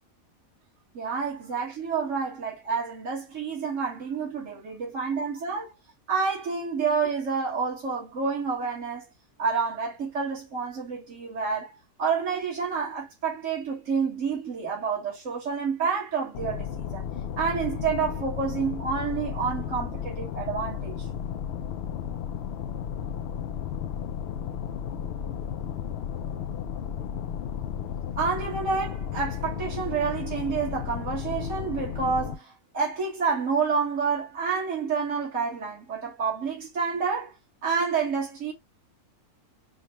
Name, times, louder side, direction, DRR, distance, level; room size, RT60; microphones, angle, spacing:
voice 1, 0.9-5.7 6.1-9.1 9.4-17.1 17.4-21.1 28.2-37.4 37.6-38.5, right 5 dB, 55° right, 2.0 m, -29 dB
sound 1, 16.3-32.4, left 8 dB, 75° left, 0.6 m, -34 dB
4.9 x 2.3 x 3.0 m
omnidirectional pair, 1.6 m